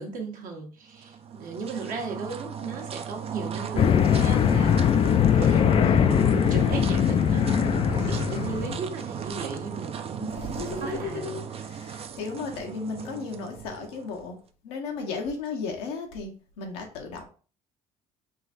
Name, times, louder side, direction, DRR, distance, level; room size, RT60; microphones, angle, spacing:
voice 1, 0.0-7.6 8.0-11.8, right 4 dB, 65° right, 1.3 m, -37 dB
sound 1, 0.9-14.2, right 7 dB, 45° right, 0.5 m, -35 dB
sound 2, 3.8-8.8, left 9 dB, 40° left, 0.3 m, -21 dB
voice 2, 10.3-14.4 14.6-17.3, left 4 dB, 90° left, 1.0 m, -35 dB
3.8 x 2.5 x 4.1 m
supercardioid pair, 75°, 15 cm